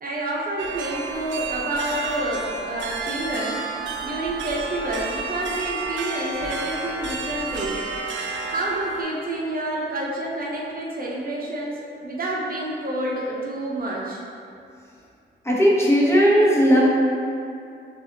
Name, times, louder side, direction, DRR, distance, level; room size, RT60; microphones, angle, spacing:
voice 1, 0.0-7.8 8.2-14.2, right 1 dB, 50° right, -4 dB, 0.7 m, -29 dB
sound 1, 0.6-9.0, right 3 dB, 85° right, 0.5 m, -31 dB
voice 2, 15.4-16.8, equal, 15° left, -6 dB, 1.0 m, -17 dB
6.4 x 2.5 x 2.8 m, 2.5 s
cardioid pair, 70°, 19 cm